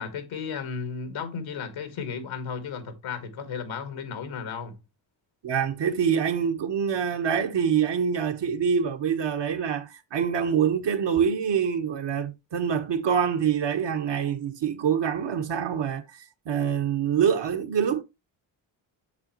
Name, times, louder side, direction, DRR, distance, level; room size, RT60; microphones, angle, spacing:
voice 1, 0.0-4.8, left 6 dB, 80° left, 1.9 m, -34 dB
voice 2, 5.4-16.0 16.4-18.0, right 7 dB, 60° right, 1.4 m, -25 dB
8.2 x 6.9 x 3.0 m
supercardioid pair, 60°, 47 cm